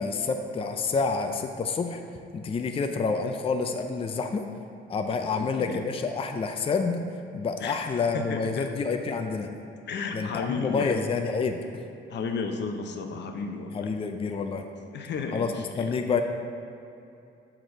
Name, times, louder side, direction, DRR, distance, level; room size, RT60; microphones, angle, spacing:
voice 1, 0.0-2.0 2.3-4.5 4.9-7.0 7.3-9.5 10.1-11.6 13.7-14.6 15.3-15.5 15.8-16.2, left 4 dB, 30° left, 6 dB, 0.4 m, -28 dB
voice 2, 5.3-5.8 7.6-8.7 9.9-10.9 12.1-13.9 14.8-15.9, left 4 dB, 60° left, 5 dB, 0.7 m, -33 dB
5.8 x 4.9 x 5.2 m, 2.7 s
cardioid pair, 90°, 20 cm